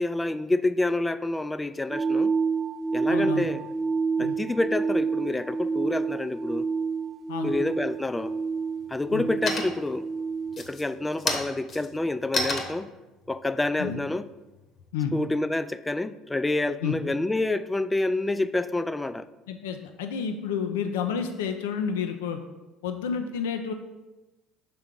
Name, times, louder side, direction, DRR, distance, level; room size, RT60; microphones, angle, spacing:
voice 1, 0.0-2.3 2.9-3.6 4.2-6.7 7.4-8.3 8.9-10.1 10.6-12.9 13.3-14.3 15.1-19.3, left 2 dB, 10° left, 13 dB, 0.3 m, -28 dB
sound 1, 1.9-10.6, right 5 dB, 45° right, 0.9 m, -28 dB
voice 2, 3.1-3.5 4.2-4.3 7.3-7.6 9.1-9.3 13.8-14.0 14.9-15.1 16.8-17.0 19.5-22.4 22.8-23.7, left 7 dB, 90° left, 6 dB, 0.5 m, -30 dB
sound 2, 7.9-8.4 8.8-9.2 9.5-10.0 10.5-14.9, left 2 dB, 45° left, 1.0 m, -32 dB
5.9 x 3.6 x 5.1 m, 1.1 s
supercardioid pair, 80°, 0 cm